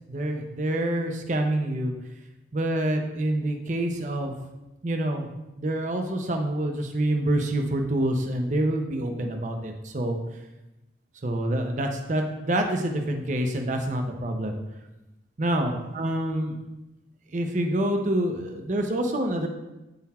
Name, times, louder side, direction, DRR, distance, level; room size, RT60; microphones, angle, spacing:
voice 1, 0.1-1.9 2.5-4.3 4.8-5.3 5.6-10.2 11.2-14.6 15.4-16.6 17.3-19.5, right 1 dB, 40° right, 4 dB, 0.6 m, -27 dB
8.6 x 3.9 x 4.2 m, 1.0 s
head